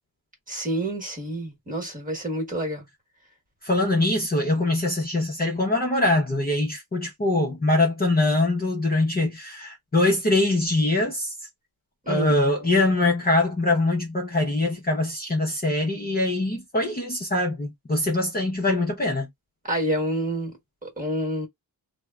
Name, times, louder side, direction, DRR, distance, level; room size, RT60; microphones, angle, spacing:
voice 1, 0.5-2.9 12.0-12.4 19.6-20.6 20.8-21.5, right 1 dB, 20° right, 1.2 m, -28 dB
voice 2, 3.6-11.4 12.1-19.3, left 2 dB, 25° left, 0.7 m, -23 dB
3.4 x 2.1 x 2.2 m
wide cardioid pair, 150°, 37 cm